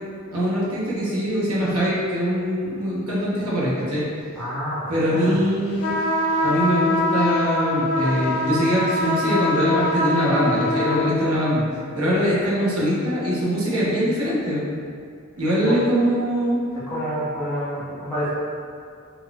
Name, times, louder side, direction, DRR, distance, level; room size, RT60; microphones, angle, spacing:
voice 1, 0.3-4.1 4.9-5.9 6.4-11.6 11.9-14.6 15.4-16.6, equal, 90° right, -7 dB, 0.9 m, -22 dB
voice 2, 4.4-5.4 15.7-15.8 16.7-18.3, equal, 10° left, -12 dB, 0.9 m, -28 dB
sound 1, 5.8-11.3, left 1 dB, 90° left, 0.4 m, -23 dB
3.9 x 2.3 x 2.3 m, 2.3 s
head